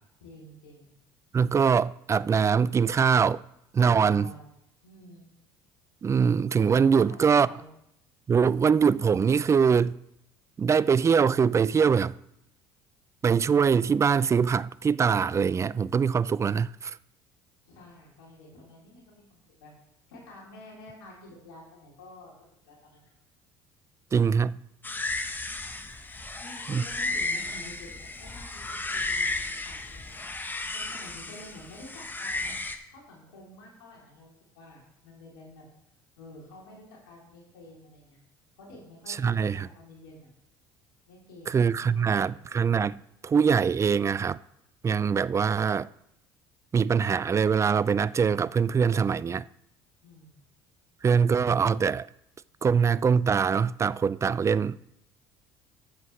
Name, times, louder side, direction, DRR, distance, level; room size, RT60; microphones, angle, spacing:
voice 1, 0.2-0.9 4.0-4.4 4.8-5.3 6.8-7.7 17.7-19.7 20.1-23.0 26.4-30.1 30.7-32.5 32.9-35.6 36.2-38.2 38.6-40.3 41.1-42.4 50.0-50.4, left 1 dB, 90° left, 3.1 m, -49 dB
voice 2, 1.3-3.4 3.7-4.3 6.0-7.5 8.3-10.0 10.6-12.2 13.2-17.0 24.1-24.6 26.7-26.8 39.1-39.7 41.5-44.4 44.8-45.9 46.7-49.4 51.0-52.1 52.6-54.8, right 6 dB, 25° right, 0.3 m, -23 dB
sound 1, 24.8-32.8, left 2 dB, 15° left, 1.1 m, -33 dB
12.5 x 7.5 x 3.2 m
hypercardioid pair, 70°, 11 cm